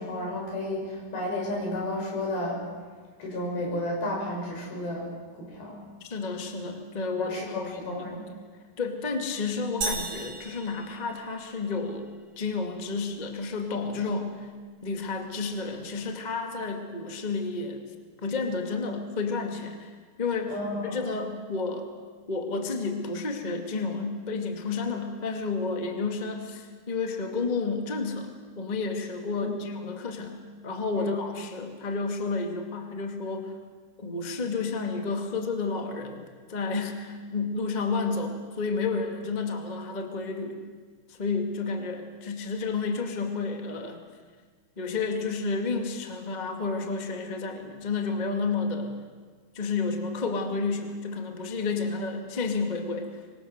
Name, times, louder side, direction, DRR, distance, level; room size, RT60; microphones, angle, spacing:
voice 1, 0.0-2.6 3.2-5.1 5.4-5.8 7.2-8.2 20.5-21.1 29.4-29.7 31.0-31.1, left 1 dB, 85° left, -1 dB, 7.8 m, -32 dB
voice 2, 6.0-8.3 8.8-12.1 12.4-14.5 14.8-17.8 18.2-20.6 20.8-21.9 22.3-30.4 30.6-33.5 34.0-36.2 36.5-40.6 41.1-44.0 44.8-48.9 49.5-53.1, left 4 dB, 20° left, 4 dB, 1.1 m, -31 dB
sound 1, 9.8-11.7, right 4 dB, 45° right, 2.6 m, -35 dB
25.5 x 22.0 x 6.6 m, 1.5 s
omnidirectional pair, 4.2 m